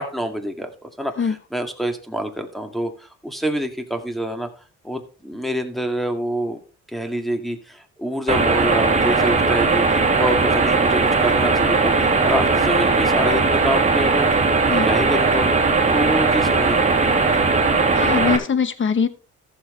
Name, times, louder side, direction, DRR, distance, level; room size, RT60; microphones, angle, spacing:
voice 1, 0.0-4.5 4.8-6.6 6.9-14.3 14.6-15.5 15.9-17.2, equal, ahead, 5 dB, 2.1 m, -26 dB
sound 1, 8.3-18.4, right 4 dB, 25° right, 2.9 m, -18 dB
voice 2, 17.9-19.1, left 6 dB, 40° left, 13 dB, 1.1 m, -21 dB
14.5 x 7.4 x 3.3 m, 0.36 s
cardioid pair, 90°, 30 cm